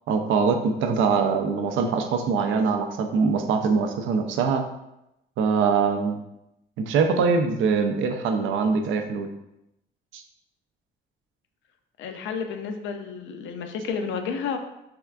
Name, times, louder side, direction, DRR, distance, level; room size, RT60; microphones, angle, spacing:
voice 1, 0.1-4.6 5.4-6.2 6.8-9.3 10.1-10.2, right 5 dB, 80° right, 6 dB, 0.4 m, -23 dB
voice 2, 12.0-14.6, left 6 dB, 75° left, 5 dB, 0.4 m, -31 dB
3.5 x 2.3 x 2.3 m, 0.86 s
cardioid pair, 90°, 20 cm